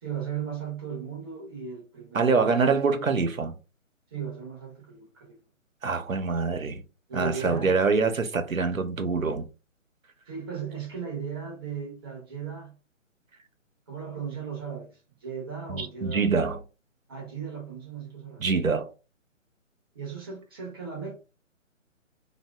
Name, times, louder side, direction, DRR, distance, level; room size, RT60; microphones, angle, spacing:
voice 1, 0.0-2.7 4.1-5.4 7.1-7.7 10.3-12.7 13.9-16.3 17.1-18.4 19.9-21.2, right 6 dB, 20° right, 0.7 m, -36 dB
voice 2, 2.1-3.5 5.8-6.8 7.1-9.5 15.7-16.6 18.4-18.9, right 4 dB, 85° right, 0.8 m, -25 dB
2.8 x 2.5 x 3.4 m
figure-of-eight pair, 140°, 39 cm